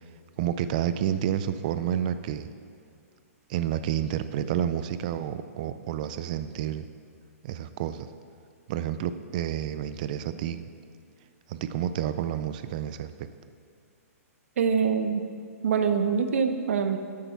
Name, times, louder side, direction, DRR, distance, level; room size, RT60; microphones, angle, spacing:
voice 1, 0.4-2.5 3.5-6.9 7.4-8.1 8.7-10.6 11.5-13.3, right 10 dB, 30° right, 12 dB, 0.4 m, -30 dB
voice 2, 14.6-15.2 15.6-17.0, right 6 dB, 60° right, 8 dB, 0.9 m, -24 dB
12.5 x 8.4 x 4.6 m, 2.4 s
hypercardioid pair, 165°, 8 cm